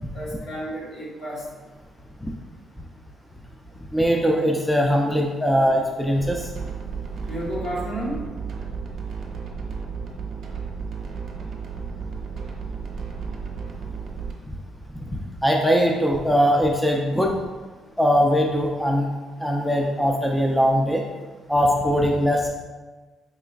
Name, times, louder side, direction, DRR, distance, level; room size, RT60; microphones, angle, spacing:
voice 1, 0.1-1.4 7.3-8.2, right 1 dB, 60° left, -5 dB, 1.4 m, -31 dB
voice 2, 3.9-6.5 15.0-15.1 15.4-17.4 18.0-19.1 19.4-21.0 21.5-22.5, equal, 5° left, 0 dB, 0.4 m, -21 dB
sound 1, 6.2-14.3, right 5 dB, 65° right, 0.7 m, -33 dB
4.8 x 3.0 x 2.4 m, 1.3 s
cardioid pair, 90°, 0 cm